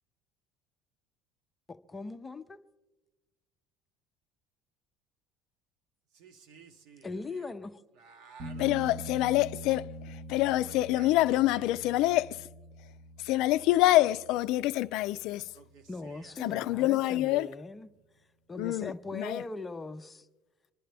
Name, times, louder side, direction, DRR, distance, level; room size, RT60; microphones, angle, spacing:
voice 1, 1.7-2.6 7.0-7.8 15.9-17.9 18.5-20.3, left 3 dB, 15° left, 0.6 m, -40 dB
voice 2, 6.1-7.1 7.3-7.5 8.0-8.7 9.1-9.2 11.0-11.6 15.5-16.3, right 5 dB, 65° right, 1.2 m, -54 dB
sound 1, 8.4-16.0 19.0-19.1, right 1 dB, 40° right, 1.3 m, -45 dB
voice 3, 8.6-12.4 13.2-15.4 16.4-17.5 18.6-19.4, left 16 dB, 60° left, 0.4 m, -26 dB
25.5 x 11.5 x 3.4 m
cardioid pair, 160°, 0 cm